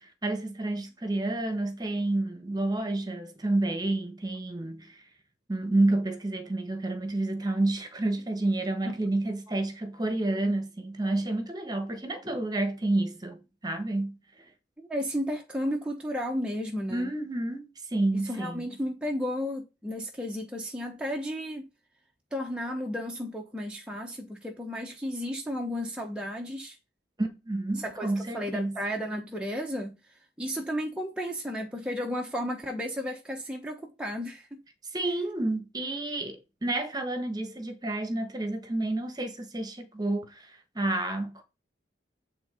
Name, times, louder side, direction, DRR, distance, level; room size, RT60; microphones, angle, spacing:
voice 1, 0.2-5.0 5.5-14.2 16.9-17.6 17.9-18.6 27.2-28.7 34.9-40.5 40.7-41.4, right 2 dB, 25° right, 1.4 m, -29 dB
voice 2, 14.8-17.1 18.2-21.7 22.3-26.8 27.7-34.5, equal, 5° right, 1.1 m, -33 dB
9.1 x 3.8 x 5.1 m
head